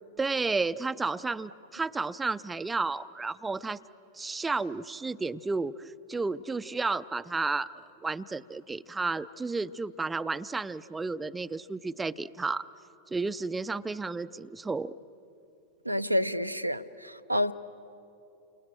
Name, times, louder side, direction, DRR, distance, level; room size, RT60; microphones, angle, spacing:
voice 1, 0.2-3.8 4.1-7.7 8.0-12.7 13.1-14.9, right 3 dB, 10° right, 13 dB, 0.5 m, -32 dB
voice 2, 15.8-17.5, equal, 90° right, 9 dB, 0.7 m, -29 dB
29.0 x 26.0 x 7.6 m, 2.9 s
figure-of-eight pair, 90°, 0 cm